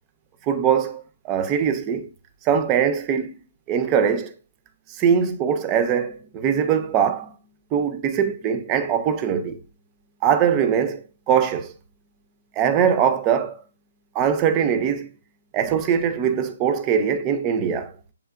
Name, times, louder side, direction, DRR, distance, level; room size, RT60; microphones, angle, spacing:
voice 1, 0.5-2.1 2.4-3.4 3.7-4.3 4.9-7.3 7.7-9.6 10.2-11.7 12.6-13.6 14.1-15.1 15.5-17.9, right 8 dB, 15° right, 0.4 m, -22 dB
7.2 x 3.1 x 2.4 m
hypercardioid pair, 170°, 0 cm